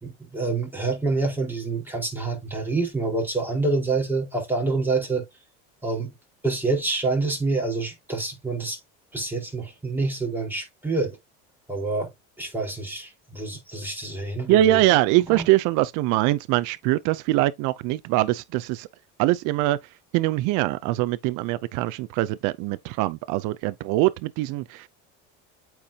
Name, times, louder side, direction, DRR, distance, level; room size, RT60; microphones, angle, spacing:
voice 1, 0.0-5.2 5.8-6.1 6.4-8.8 9.1-11.2 11.7-12.1 12.4-14.8 15.3-15.4, right 3 dB, 5° right, 4.2 m, -27 dB
voice 2, 14.5-18.9 19.2-19.8 20.1-24.9, right 16 dB, 70° right, 0.6 m, -23 dB
8.4 x 4.6 x 2.8 m
supercardioid pair, 105°, 32 cm